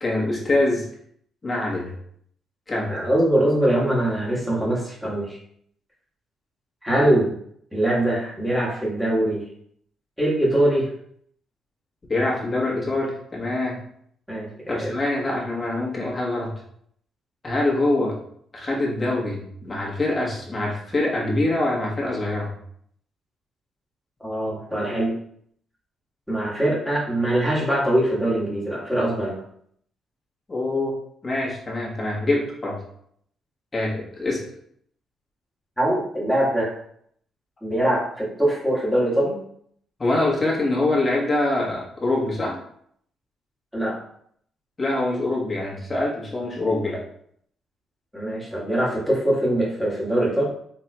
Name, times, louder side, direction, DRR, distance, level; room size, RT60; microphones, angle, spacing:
voice 1, 0.0-0.8 1.4-1.9 2.7-3.0 12.1-13.8 14.7-16.5 17.4-18.2 18.5-22.5 30.5-31.0 31.2-32.8 33.7-34.4 40.0-42.6 44.8-47.0, left 2 dB, 30° left, -3 dB, 1.3 m, -24 dB
voice 2, 2.9-5.4 6.8-7.4 7.7-9.4 10.2-10.9 14.3-14.9 24.2-25.1 26.3-29.4 35.8-36.7 37.6-39.4 43.7-44.0 48.1-50.4, right 1 dB, ahead, -6 dB, 1.5 m, -22 dB
4.2 x 3.6 x 2.3 m, 0.66 s
cardioid pair, 90°, 0 cm